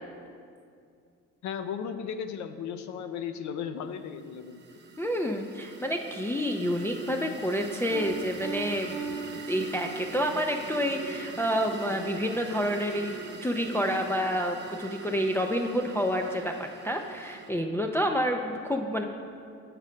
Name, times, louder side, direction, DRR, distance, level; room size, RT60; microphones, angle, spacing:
voice 1, 1.4-4.6, left 7 dB, 70° left, 9 dB, 0.5 m, -35 dB
sound 1, 4.1-17.5, right 4 dB, 35° right, 0.8 m, -42 dB
voice 2, 5.0-8.9 9.5-13.2 13.4-19.0, equal, 10° left, 2 dB, 0.3 m, -29 dB
Piano, 7.9-10.4, right 4 dB, 85° right, 0.7 m, -38 dB
7.2 x 5.2 x 4.3 m, 2.3 s
cardioid pair, 90°, 30 cm